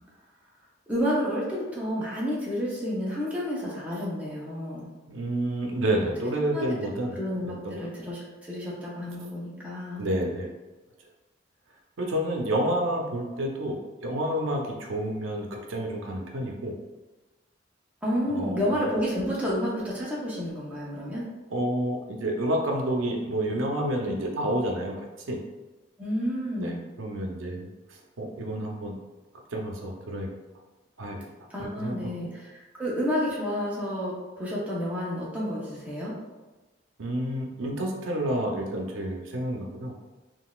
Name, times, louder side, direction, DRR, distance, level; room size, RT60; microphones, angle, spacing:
voice 1, 0.9-4.9 6.5-6.6 7.1-10.0 18.0-21.2 26.0-26.8 31.5-36.2, equal, 10° right, -6 dB, 0.7 m, -30 dB
voice 2, 5.1-7.2 7.6-7.9 10.0-10.5 12.0-16.7 18.3-18.8 21.5-25.0 25.3-25.4 26.6-29.0 29.5-30.3 31.0-31.2 31.6-32.3 37.0-39.9, right 1 dB, 90° right, 1 dB, 0.5 m, -29 dB
3.8 x 2.4 x 2.3 m, 1.2 s
head